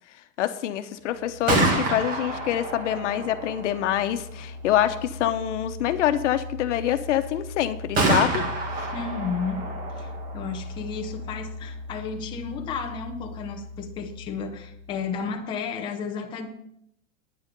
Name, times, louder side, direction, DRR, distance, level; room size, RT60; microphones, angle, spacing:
voice 1, 0.4-8.5 8.8-8.9, left 11 dB, 70° left, 10 dB, 1.1 m, -25 dB
Gunshot gunfire, 1.2-15.0, right 2 dB, 20° right, 1.7 m, -31 dB
voice 2, 8.9-9.7 10.0-16.5, left 5 dB, 15° left, 3 dB, 0.7 m, -33 dB
9.8 x 9.3 x 5.3 m, 0.75 s
supercardioid pair, 175°, 38 cm